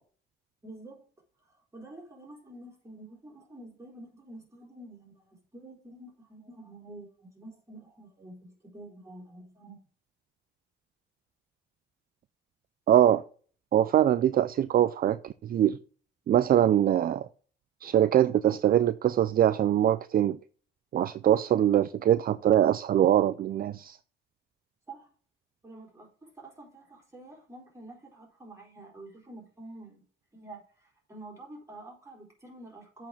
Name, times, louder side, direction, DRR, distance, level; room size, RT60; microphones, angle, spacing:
voice 1, 0.6-1.1 1.5-9.8 17.8-17.9 24.9-25.1 25.6-30.0 30.3-33.1, right 2 dB, 15° right, 4.2 m, -48 dB
voice 2, 12.9-13.2 13.7-15.8 16.3-17.3 17.8-20.4 20.9-24.0, right 11 dB, 50° right, 0.4 m, -23 dB
8.0 x 4.5 x 6.0 m
cardioid pair, 90°, 20 cm